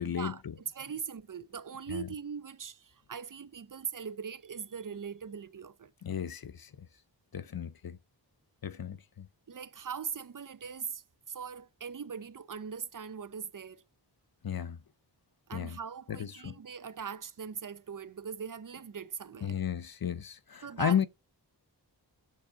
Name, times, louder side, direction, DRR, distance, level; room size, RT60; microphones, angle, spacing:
voice 1, 0.0-0.5 1.9-2.1 6.0-6.7 7.3-8.0 8.6-9.3 14.4-14.8 15.5-15.8 16.1-16.6 19.4-21.1, left 8 dB, 55° left, 0.6 m, -34 dB
voice 2, 0.7-5.9 9.5-13.8 15.5-19.6 20.6-21.1, right 6 dB, 45° right, 0.7 m, -41 dB
6.9 x 5.4 x 6.9 m
wide cardioid pair, 70°, 43 cm